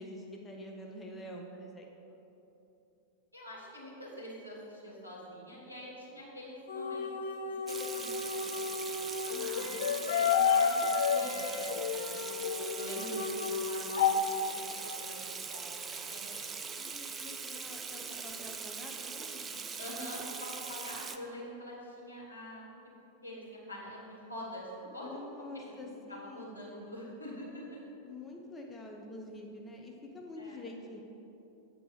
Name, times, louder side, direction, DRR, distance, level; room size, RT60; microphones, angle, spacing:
voice 1, 0.0-2.2 9.3-9.8 16.7-19.6 25.0-26.6 28.0-31.0, left 2 dB, 15° left, 0 dB, 0.8 m, -47 dB
voice 2, 3.3-7.3 7.7-12.3 12.7-15.3 15.5-16.4 19.8-22.6 23.2-25.2 25.5-25.7 26.1-27.8 30.4-30.6, equal, 85° left, -6 dB, 1.9 m, -45 dB
sound 1, 6.7-14.1, left 6 dB, 60° left, 0.6 m, -31 dB
Water tap faucet / Sink (filling or washing), 7.7-21.2, right 5 dB, 20° right, 0.4 m, -41 dB
7.9 x 4.5 x 6.5 m, 2.9 s
figure-of-eight pair, 90°, 0 cm